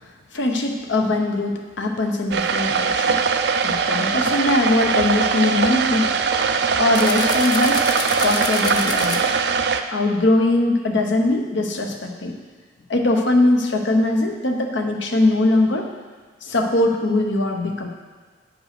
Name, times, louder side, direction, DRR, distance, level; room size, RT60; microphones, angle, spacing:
voice 1, 0.3-3.2 3.6-6.1 6.8-7.9 8.2-9.3 9.9-12.3 12.9-15.9 16.4-17.9, left 2 dB, 75° left, 3 dB, 0.9 m, -21 dB
sound 1, 2.3-9.8, right 5 dB, 60° right, 0.4 m, -21 dB
sound 2, 7.0-9.2, left 3 dB, 20° left, 0.6 m, -28 dB
9.0 x 5.4 x 6.0 m, 1.5 s
head